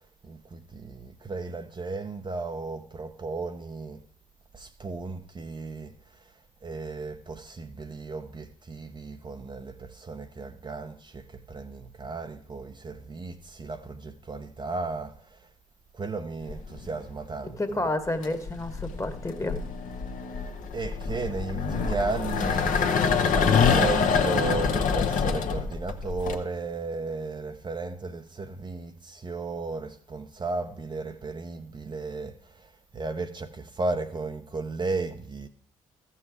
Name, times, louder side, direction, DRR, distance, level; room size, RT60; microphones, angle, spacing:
voice 1, 0.3-4.0 4.5-5.9 6.6-15.1 15.9-17.9 20.7-32.3 32.9-35.5, right 3 dB, 30° right, 0.7 m, -34 dB
sound 1, 16.5-17.0 18.1-26.4, left 6 dB, 55° left, 1.1 m, -26 dB
voice 2, 17.6-19.6, left 2 dB, 20° left, 1.4 m, -30 dB
14.0 x 5.7 x 4.8 m
hypercardioid pair, 50°, 16 cm